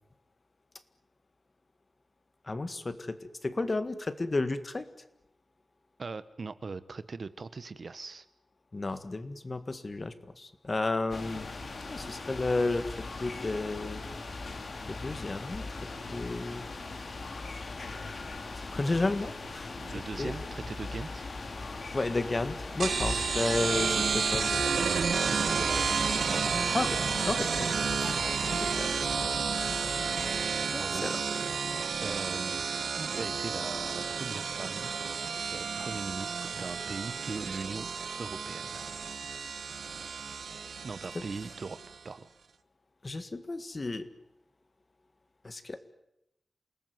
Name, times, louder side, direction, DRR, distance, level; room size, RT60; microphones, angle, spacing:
voice 1, 2.4-4.9 8.7-11.5 11.9-14.1 14.9-15.8 16.1-16.7 18.7-20.3 21.9-24.6 26.7-27.0 27.3-29.0 30.7-31.2 41.1-41.2 43.0-44.1 45.4-45.8, left 2 dB, 35° left, 11 dB, 1.8 m, -33 dB
voice 2, 6.0-8.2 19.8-21.3 23.6-24.4 25.3-26.5 30.7-31.1 32.0-34.9 35.5-37.9 38.2-38.9 40.8-41.8 42.0-42.3, right 4 dB, 55° right, 14 dB, 1.1 m, -40 dB
sound 1, 11.1-30.5, left 3 dB, 60° left, 3.3 m, -40 dB
sound 2, 22.8-41.9, right 6 dB, 85° right, 0.9 m, -31 dB
28.5 x 19.0 x 9.5 m, 0.85 s
wide cardioid pair, 125°, 0 cm